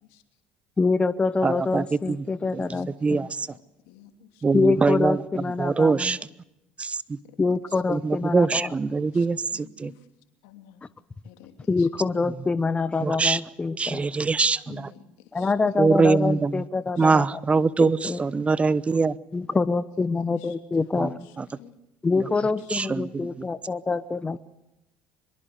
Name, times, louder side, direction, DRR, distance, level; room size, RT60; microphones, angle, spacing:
voice 1, 0.8-3.3 4.5-6.2 7.4-8.7 11.7-14.0 15.3-17.4 17.8-18.2 19.3-21.3 22.0-24.4, left 4 dB, 25° left, 15 dB, 1.0 m, -25 dB
voice 2, 1.4-2.2 2.5-2.6 3.0-3.5 4.4-5.2 5.6-6.2 6.8-7.2 7.9-9.9 13.0-13.4 13.8-14.9 15.8-16.6 17.0-19.1 21.0-21.1 21.4-21.5 22.7-23.3, right 4 dB, 25° right, 18 dB, 1.0 m, -23 dB
voice 3, 3.5-4.4 7.3-7.4 7.7-7.8 8.1-8.6 9.1-10.0 10.4-10.9 11.2-11.9 14.7-15.0 15.3-15.5 17.0-17.1 20.3-20.5 21.1-21.3 21.6-21.8 22.4-22.5, left 11 dB, 75° left, 7 dB, 3.0 m, -50 dB
24.0 x 22.5 x 8.2 m, 0.91 s
hypercardioid pair, 65°, 5 cm